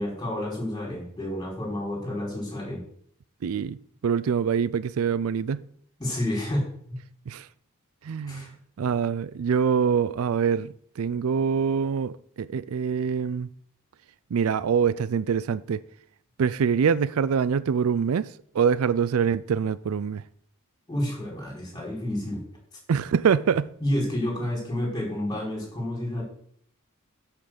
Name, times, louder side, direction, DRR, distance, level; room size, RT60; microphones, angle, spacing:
voice 1, 0.0-2.8 6.0-6.6 6.9-7.0 8.2-8.5 20.9-22.4 23.8-26.2, left 1 dB, 20° left, 4.7 m, -29 dB
voice 2, 3.4-3.8 4.0-5.6 7.3-7.5 8.0-8.5 8.8-13.5 14.3-15.8 16.4-18.3 18.5-20.2 22.9-23.7, right 6 dB, 70° right, 0.4 m, -24 dB
8.6 x 5.7 x 7.7 m
head